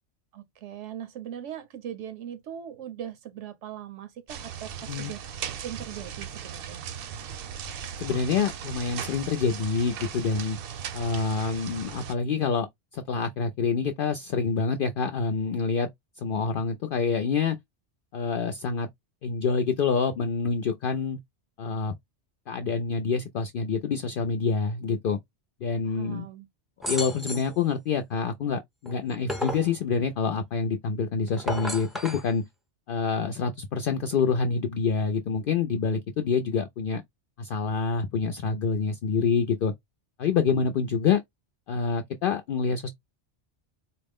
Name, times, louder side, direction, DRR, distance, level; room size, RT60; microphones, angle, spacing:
voice 1, 0.3-6.9 25.8-26.5, right 10 dB, 85° right, 1.0 m, -40 dB
sound 1, 4.3-12.1, right 8 dB, 60° right, 0.7 m, -38 dB
voice 2, 8.0-10.6 10.9-12.7 12.9-15.9 16.2-17.6 18.1-18.9 19.2-21.2 21.6-21.9 22.5-25.2 25.6-26.3 26.9-32.4 32.9-37.0 37.4-39.7 40.2-41.2 41.7-42.9, left 5 dB, 60° left, 0.6 m, -27 dB
sound 2, 26.8-27.5 28.9-29.7 31.3-32.3, left 1 dB, ahead, 0.6 m, -32 dB
4.2 x 2.0 x 3.5 m
omnidirectional pair, 1.2 m